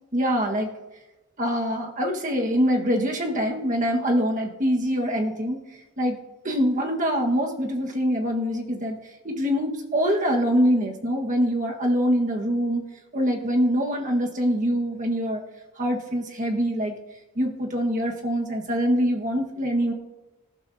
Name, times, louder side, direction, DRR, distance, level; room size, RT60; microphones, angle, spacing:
voice 1, 0.1-0.7 1.4-5.6 6.0-6.2 6.4-9.0 9.2-12.8 13.1-15.4 15.8-17.0 17.3-19.9, equal, 35° right, 1 dB, 1.6 m, -24 dB
25.5 x 11.5 x 2.8 m, 1.1 s
head